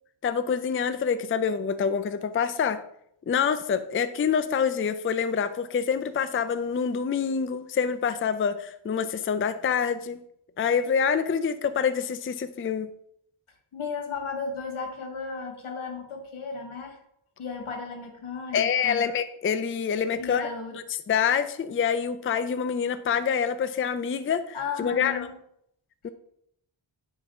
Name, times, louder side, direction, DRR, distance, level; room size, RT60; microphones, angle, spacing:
voice 1, 0.2-2.8 3.3-10.2 10.6-12.9 18.5-20.5 21.1-25.3 26.0-26.1, left 7 dB, 30° left, 12 dB, 0.4 m, -26 dB
voice 2, 13.7-17.0 17.4-19.1 20.1-20.7 24.5-25.4, left 5 dB, 85° left, 3 dB, 1.7 m, -35 dB
9.8 x 3.8 x 5.6 m, 0.73 s
wide cardioid pair, 150°, 48 cm